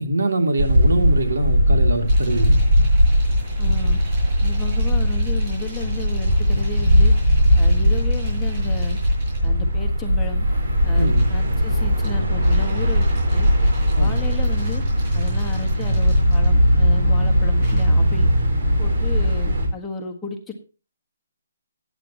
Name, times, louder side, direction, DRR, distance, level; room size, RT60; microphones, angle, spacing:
voice 1, 0.0-2.6 11.0-11.3 13.9-14.3, right 1 dB, 85° right, 2.9 m, -24 dB
sound 1, 0.6-19.7, equal, 55° right, 3.7 m, -19 dB
sound 2, 2.0-9.5 10.8-11.5 12.0-16.8 17.6-17.8, right 2 dB, 30° right, 7.5 m, -44 dB
voice 2, 3.6-4.0 4.4-7.1 7.6-9.0 9.4-10.5 10.8-13.5 14.0-14.8 15.1-18.3 18.8-20.5, left 4 dB, 5° left, 1.4 m, -33 dB
15.5 x 9.2 x 3.0 m
hypercardioid pair, 175°, 0 cm